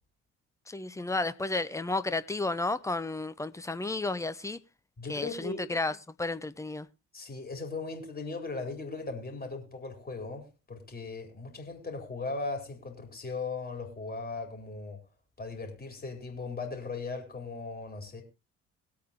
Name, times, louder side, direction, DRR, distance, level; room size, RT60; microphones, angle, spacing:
voice 1, 0.7-4.6 5.1-6.9, left 2 dB, 10° left, 0.9 m, -32 dB
voice 2, 5.0-5.6 7.1-15.0 15.4-18.2, left 3 dB, 25° left, 4.5 m, -38 dB
21.5 x 8.5 x 3.0 m
figure-of-eight pair, 50°, 34 cm